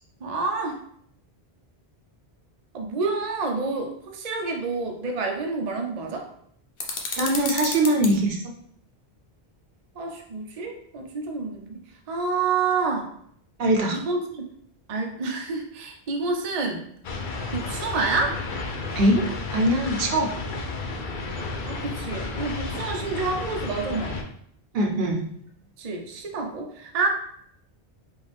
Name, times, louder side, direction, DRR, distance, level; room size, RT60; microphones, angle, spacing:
voice 1, 0.2-0.8 2.7-6.3 10.0-11.8 12.1-13.1 13.9-14.4 14.9-16.8 17.5-18.4 21.7-24.2 25.8-27.1, right 4 dB, 45° right, 2 dB, 0.6 m, -28 dB
sound 1, 6.8-8.1, left 4 dB, 80° left, 1.0 m, -31 dB
voice 2, 7.2-8.4 13.6-14.0 19.0-19.2 19.5-20.3 24.7-25.2, right 1 dB, 70° right, 1 dB, 0.9 m, -21 dB
sound 2, 17.0-24.2, left 3 dB, 55° left, 0.7 m, -32 dB
5.2 x 2.4 x 3.4 m, 0.67 s
omnidirectional pair, 1.1 m